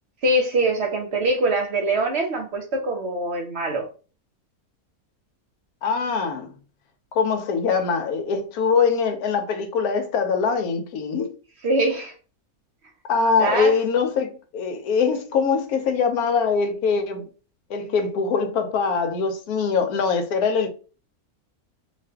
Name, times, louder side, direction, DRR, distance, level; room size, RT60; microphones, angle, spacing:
voice 1, 0.2-3.8 11.6-12.1 13.4-13.7, right 2 dB, 55° right, 0.9 m, -23 dB
voice 2, 5.8-6.5 7.1-11.3 13.1-17.3 17.7-20.7, left 5 dB, 85° left, 1.1 m, -23 dB
2.5 x 2.4 x 3.3 m
omnidirectional pair, 1.6 m